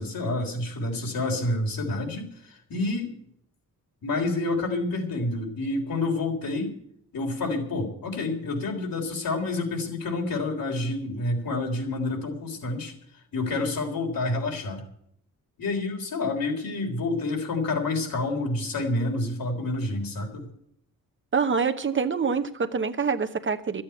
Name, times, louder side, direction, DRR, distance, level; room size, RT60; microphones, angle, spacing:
voice 1, 0.0-3.1 4.0-6.8 7.1-12.9 13.3-14.8 15.6-20.5, left 2 dB, 80° left, 2 dB, 3.7 m, -28 dB
voice 2, 21.3-23.8, right 5 dB, 35° right, 8 dB, 0.8 m, -25 dB
13.0 x 8.6 x 9.1 m, 0.70 s
wide cardioid pair, 130°, 34 cm